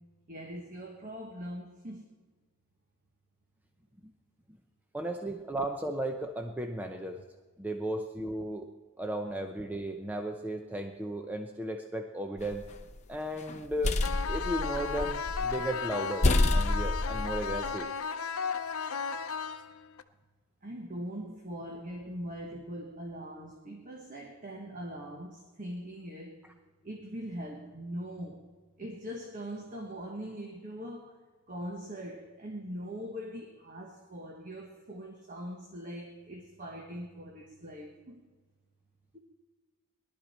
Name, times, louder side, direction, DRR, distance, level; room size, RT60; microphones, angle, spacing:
voice 1, 0.3-2.1 20.6-26.5 26.8-28.4 28.8-38.2 39.1-39.2, equal, 35° right, 2 dB, 1.3 m, -41 dB
voice 2, 4.9-7.2 7.6-8.7 9.0-12.6 13.1-14.0 14.3-17.9, right 1 dB, 5° right, 4 dB, 0.6 m, -35 dB
sound 1, 12.4-13.0 13.5-15.6 15.9-16.0 16.2-17.7, left 2 dB, 30° left, 0.8 m, -28 dB
sound 2, 14.0-20.0, left 6 dB, 70° left, 0.7 m, -35 dB
18.5 x 12.0 x 4.3 m, 1.4 s
head